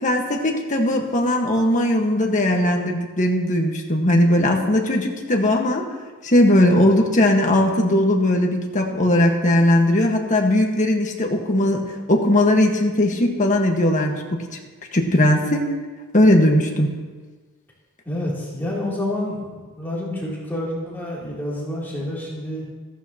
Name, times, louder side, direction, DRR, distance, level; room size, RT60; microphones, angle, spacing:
voice 1, 0.0-5.8 6.2-11.8 12.1-14.4 14.9-15.7 16.1-16.9, left 1 dB, 35° left, 1 dB, 1.5 m, -18 dB
voice 2, 18.0-22.6, left 1 dB, 10° left, -7 dB, 3.1 m, -28 dB
14.5 x 14.0 x 3.0 m, 1.4 s
head